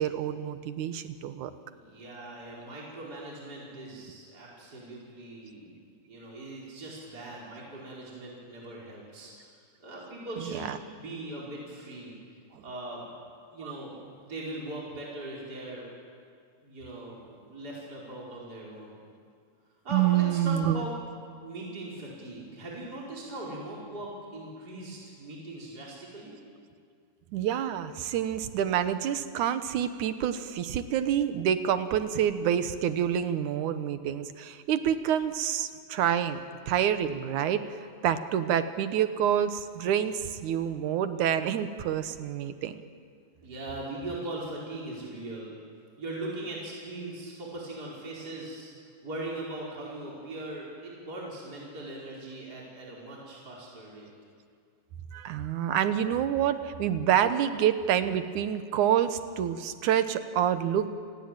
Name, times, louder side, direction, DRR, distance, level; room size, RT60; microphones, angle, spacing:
voice 1, 0.0-1.5 10.4-10.8 12.5-12.6 13.6-13.7 19.9-20.8 27.3-36.4 36.7-42.8 55.1-60.9, right 10 dB, 90° right, 10 dB, 2.6 m, -27 dB
voice 2, 1.7-5.7 6.1-9.5 9.8-12.1 12.6-13.0 13.5-13.9 14.2-15.9 16.6-18.9 19.8-20.9 21.4-26.4 43.4-45.5 46.0-48.7 49.0-54.1, right 2 dB, 30° right, -5 dB, 5.3 m, -40 dB
29.0 x 19.5 x 9.1 m, 2.2 s
omnidirectional pair, 3.4 m